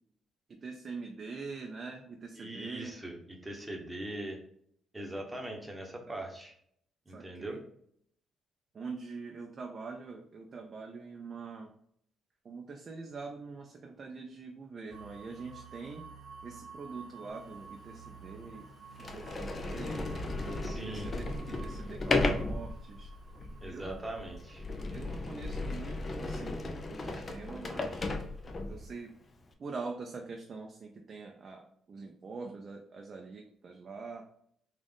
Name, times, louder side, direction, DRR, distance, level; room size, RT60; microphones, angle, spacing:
voice 1, 0.5-2.9 6.1-6.2 7.1-7.6 8.7-11.7 12.4-16.0 16.4-18.7 19.0-20.1 20.7-23.1 23.6-24.1 24.9-28.1 28.7-29.1 29.6-34.2, right 4 dB, 45° right, 1 dB, 0.5 m, -44 dB
voice 2, 2.4-4.4 4.9-6.5 7.1-7.6 20.6-21.1 23.6-24.6, right 1 dB, 10° right, 1 dB, 1.0 m, -41 dB
sound 1, 14.9-28.7, right 5 dB, 60° right, 1.1 m, -52 dB
Sliding door, 17.6-17.7 18.4-18.5 19.0-28.9, left 2 dB, 35° left, 0.5 m, -35 dB
3.8 x 2.5 x 3.5 m, 0.67 s
cardioid pair, 90°, 0 cm